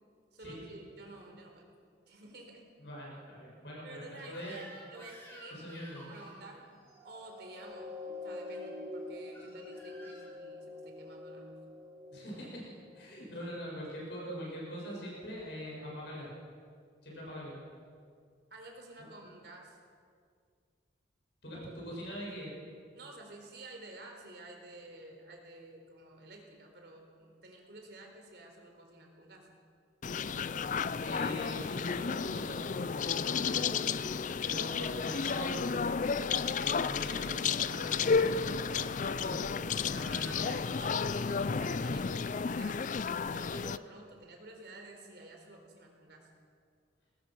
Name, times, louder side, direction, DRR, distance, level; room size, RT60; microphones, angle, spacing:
voice 1, 0.3-1.7 2.1-2.7 3.8-5.7 6.1-6.7 7.0-11.6 13.4-13.5 18.5-19.8 21.9-22.0 22.9-29.5 33.4-33.8 39.9-42.8 43.3-46.3, right 2 dB, 60° right, 2 dB, 4.1 m, -51 dB
voice 2, 2.8-4.6 5.5-6.0 12.1-12.6 12.9-16.3 17.0-17.6 21.4-22.5 31.0-34.0 34.4-35.9 36.3-40.6, equal, 65° left, -4 dB, 6.9 m, -43 dB
Crying sobbing / Screech, 4.3-6.5 8.4-8.7 9.3-10.3, equal, 15° left, 6.4 m, -53 dB
sound 1, 6.8-13.4 14.1-14.2, left 2 dB, 15° right, 5.4 m, -46 dB
sound 2, 30.0-43.8, left 5 dB, 45° left, 0.4 m, -32 dB
22.0 x 19.5 x 6.2 m, 2.1 s
head